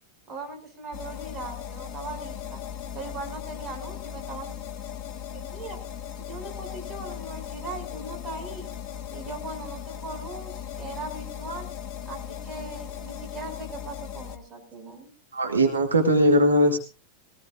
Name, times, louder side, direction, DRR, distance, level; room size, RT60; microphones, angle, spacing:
voice 1, 0.3-2.6 2.9-4.5 5.3-5.8 6.2-8.7 9.1-11.7 12.1-15.1, right 3 dB, 20° right, 2 dB, 6.1 m, -39 dB
sound 1, 0.9-14.4, left 9 dB, 35° left, 2.0 m, -38 dB
voice 2, 15.3-16.8, equal, 75° right, 2 dB, 2.3 m, -20 dB
22.0 x 18.0 x 2.5 m, 0.32 s
figure-of-eight pair, 90°, 0 cm